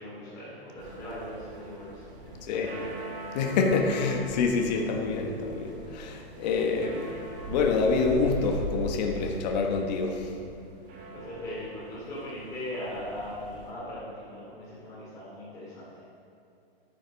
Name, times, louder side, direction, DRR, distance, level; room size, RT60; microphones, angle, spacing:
voice 1, 0.0-2.1 2.5-2.9 11.1-15.9, left 1 dB, 10° left, -11 dB, 2.8 m, -39 dB
sound 1, 0.8-13.7, right 2 dB, 25° right, 1.5 m, -41 dB
voice 2, 3.3-7.1 7.5-10.2, left 4 dB, 45° left, 2 dB, 1.3 m, -26 dB
11.5 x 9.4 x 5.2 m, 2.6 s
hypercardioid pair, 155°, 31 cm